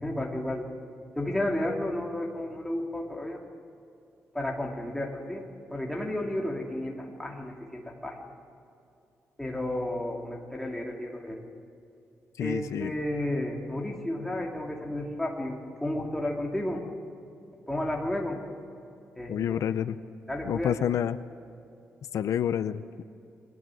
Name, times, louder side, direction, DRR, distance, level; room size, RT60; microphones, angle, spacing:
voice 1, 0.0-0.7 1.1-3.4 4.3-8.3 9.4-11.4 12.4-16.8 17.7-18.4 19.2-19.7 20.3-20.7, left 1 dB, 5° left, -1 dB, 2.8 m, -32 dB
voice 2, 12.4-12.9 19.3-20.0 20.4-21.2 22.1-23.0, left 9 dB, 80° left, 12 dB, 0.7 m, -28 dB
30.0 x 22.0 x 7.8 m, 2.7 s
wide cardioid pair, 170°, 5 cm